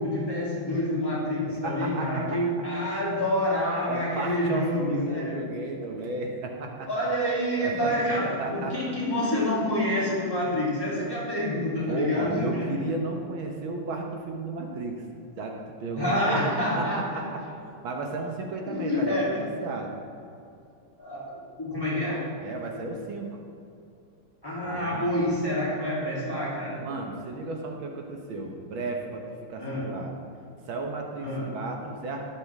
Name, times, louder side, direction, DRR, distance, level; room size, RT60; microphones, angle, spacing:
voice 1, 0.0-5.4 6.8-12.7 16.0-17.2 18.7-19.4 21.0-22.3 24.4-26.9 29.6-29.9 31.2-31.5, left 1 dB, 10° left, -8 dB, 3.2 m, -27 dB
voice 2, 1.6-2.4 3.9-6.9 7.6-7.9 8.4-8.8 11.9-15.0 15.4-16.4 16.8-17.4 17.8-19.9 22.4-23.3 24.6-25.2 26.8-30.1 30.7-32.3, right 2 dB, 75° right, 2 dB, 1.9 m, -34 dB
13.0 x 11.5 x 3.6 m, 2.6 s
omnidirectional pair, 2.3 m